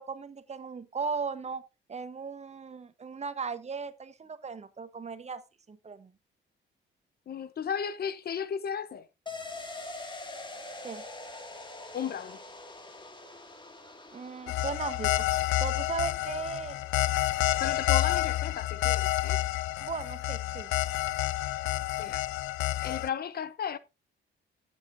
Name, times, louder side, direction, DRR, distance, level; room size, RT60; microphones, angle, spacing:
voice 1, 0.0-1.6 1.9-5.4 5.7-6.1 10.8-11.0 14.1-15.2 15.6-16.8 19.8-20.7, right 5 dB, 35° right, 1.2 m, -37 dB
voice 2, 7.3-9.1 11.9-12.4 17.6-19.4 22.0-22.3 22.8-23.8, left 8 dB, 50° left, 0.8 m, -34 dB
sound 1, 9.3-18.7 19.0-19.1, left 2 dB, 25° left, 2.2 m, -45 dB
sound 2, 14.5-23.1, left 15 dB, 90° left, 0.5 m, -29 dB
15.0 x 7.5 x 2.7 m
cardioid pair, 90°, 20 cm